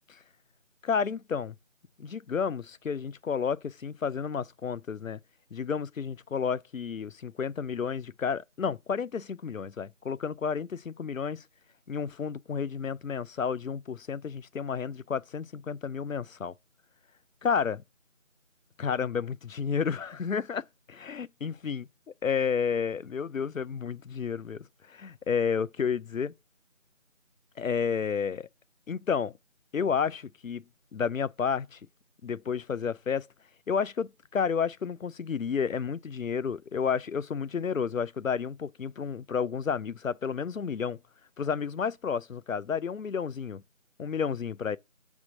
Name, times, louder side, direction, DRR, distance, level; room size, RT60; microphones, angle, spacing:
voice 1, 0.8-1.5 2.0-5.2 5.5-11.4 11.9-16.5 17.4-17.8 18.8-21.9 22.2-24.6 24.9-26.3 27.6-28.5 28.9-29.3 29.7-30.6 30.9-31.8 32.2-33.3 33.7-41.0 41.4-43.6 44.0-44.8, left 6 dB, 85° left, 0.6 m, -31 dB
6.1 x 3.5 x 5.5 m
figure-of-eight pair, 175°, 39 cm